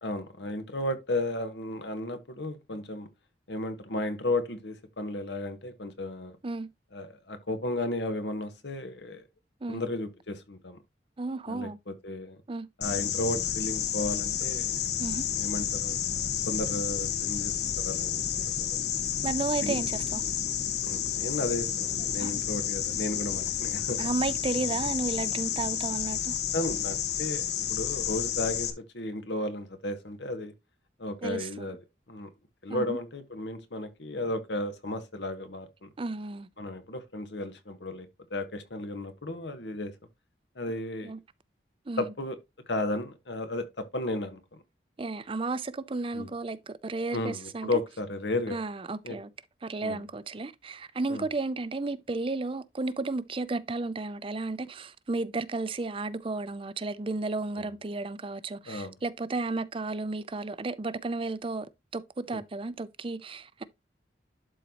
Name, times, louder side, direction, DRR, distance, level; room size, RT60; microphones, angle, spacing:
voice 1, 0.0-3.1 3.5-6.4 6.9-9.2 9.7-10.8 11.5-12.4 12.8-14.7 15.3-15.9 16.5-18.8 19.6-19.8 20.9-24.0 26.5-30.5 31.0-31.8 32.1-32.3 32.6-35.9 36.6-39.9 40.5-41.1 42.0-42.4 42.7-44.6 46.1-46.3 47.1-48.6 49.0-49.2 49.8-50.0 51.1-51.3 57.6-57.7 58.6-58.9 62.3-62.4, left 2 dB, 85° left, 1.4 m, -34 dB
voice 2, 11.2-11.8 12.5-12.7 15.0-15.3 19.2-20.2 22.2-22.3 24.0-26.3 31.2-31.7 32.7-33.0 36.0-36.5 41.0-41.2 41.9-42.0 45.0-47.8 48.5-49.3 49.6-61.7 61.9-63.6, right 3 dB, 30° right, 0.5 m, -33 dB
sound 1, 12.8-28.7, left 9 dB, 65° left, 1.0 m, -30 dB
11.5 x 4.0 x 3.0 m
head